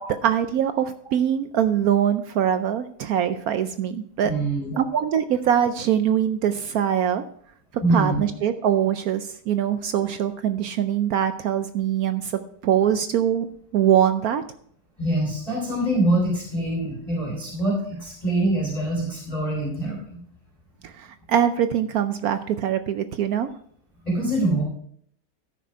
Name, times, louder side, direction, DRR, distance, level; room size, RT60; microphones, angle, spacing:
voice 1, 0.2-4.3 4.8-7.2 7.9-12.3 12.6-13.5 13.7-14.4 20.8-23.5, right 9 dB, 70° right, 10 dB, 0.9 m, -23 dB
voice 2, 4.2-4.8 7.8-8.2 15.0-20.2 24.1-24.6, right 1 dB, 20° left, -5 dB, 3.7 m, -24 dB
13.5 x 6.1 x 4.6 m, 0.63 s
omnidirectional pair, 1.9 m